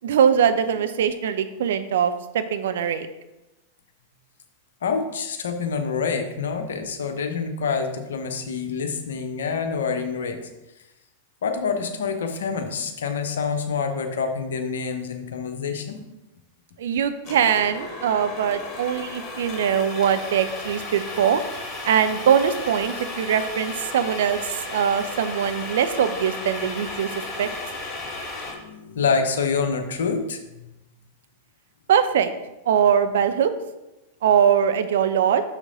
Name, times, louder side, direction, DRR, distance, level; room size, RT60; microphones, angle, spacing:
voice 1, 0.0-3.1 16.8-21.4 21.8-27.5 31.9-32.3 32.7-33.5 34.2-35.4, right 8 dB, 60° right, 10 dB, 0.6 m, -22 dB
voice 2, 4.8-10.5 11.4-16.0 28.0-30.7, left 5 dB, 65° left, 5 dB, 0.9 m, -27 dB
sound 1, 17.2-28.5, left 2 dB, 25° left, 1.9 m, -34 dB
6.3 x 6.2 x 3.9 m, 0.98 s
figure-of-eight pair, 95°, 0 cm